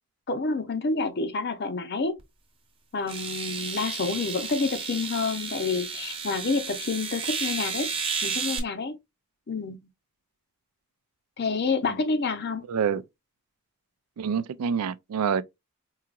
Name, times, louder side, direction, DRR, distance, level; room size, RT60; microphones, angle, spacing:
voice 1, 0.3-2.2 2.9-7.9 8.2-9.0 9.5-9.9 11.4-12.6, left 4 dB, 45° left, 0.6 m, -28 dB
sound 1, 2.2-2.3 3.1-8.6, right 5 dB, 25° right, 0.8 m, -32 dB
voice 2, 12.7-13.0 14.2-15.4, right 7 dB, 90° right, 0.4 m, -26 dB
4.7 x 2.8 x 2.3 m
head